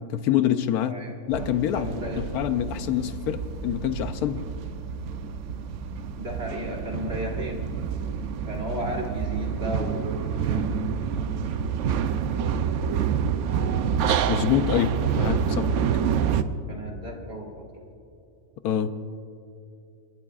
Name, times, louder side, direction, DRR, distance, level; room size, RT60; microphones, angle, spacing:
voice 1, 0.1-1.0 1.3-4.4 14.3-15.7 18.6-18.9, left 10 dB, 75° left, 11 dB, 1.0 m, -26 dB
sound 1, 1.3-16.4, right 7 dB, 65° right, 0.7 m, -28 dB
voice 2, 1.7-2.2 5.5-5.7 6.2-7.7 8.5-10.8 11.1-11.4 12.6-12.8 16.7-17.9, equal, 40° right, -1 dB, 1.8 m, -35 dB
29.5 x 11.0 x 2.4 m, 2.6 s
omnidirectional pair, 1.6 m